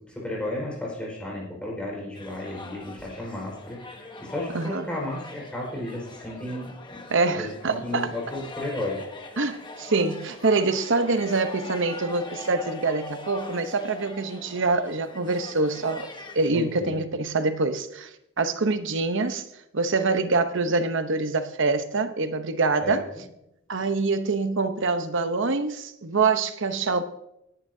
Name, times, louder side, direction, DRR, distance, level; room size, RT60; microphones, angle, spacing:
voice 1, 0.1-3.8 4.2-7.0 7.4-9.0 16.5-17.0 22.8-23.0, left 1 dB, 5° left, 4.9 m, -33 dB
sound 1, 2.1-16.5, left 2 dB, 20° left, 1.1 m, -42 dB
voice 2, 4.5-4.9 7.1-8.1 9.4-16.1 16.3-18.1 18.4-19.5 19.7-23.1 23.7-27.0, right 3 dB, 60° right, 0.9 m, -25 dB
18.5 x 11.0 x 2.8 m
head